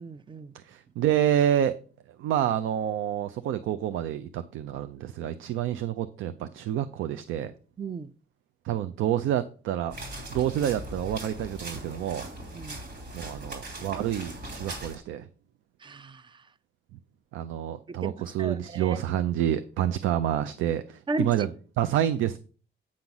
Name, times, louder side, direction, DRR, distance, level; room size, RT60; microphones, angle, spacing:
voice 1, 0.0-0.5 7.8-8.1 12.5-12.8 15.8-16.5 17.9-19.0 21.1-21.5, right 3 dB, 25° right, 0.5 m, -35 dB
voice 2, 0.5-1.8 2.2-7.5 8.6-9.9 10.3-12.2 13.1-15.3 17.3-21.5 21.8-22.4, right 11 dB, 80° right, 0.5 m, -28 dB
sound 1, 9.9-15.0, right 1 dB, 65° right, 2.8 m, -39 dB
8.6 x 3.9 x 5.9 m
cardioid pair, 90°, 20 cm